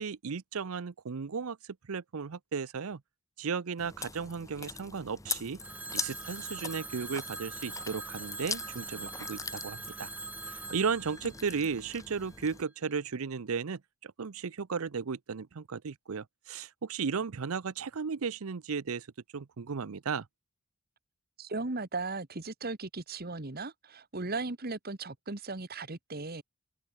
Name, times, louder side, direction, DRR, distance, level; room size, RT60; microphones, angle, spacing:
voice 1, 0.0-3.0 3.4-5.6 5.9-10.1 10.5-19.1 19.3-20.3, right 5 dB, 75° right, 0.6 m, -35 dB
Chewing mastication, 3.8-12.6, left 5 dB, 15° left, 1.5 m, -42 dB
Telephone, 5.6-12.4, right 2 dB, 5° right, 2.0 m, -43 dB
voice 2, 21.4-26.4, right 3 dB, 45° right, 1.4 m, -37 dB
open air
head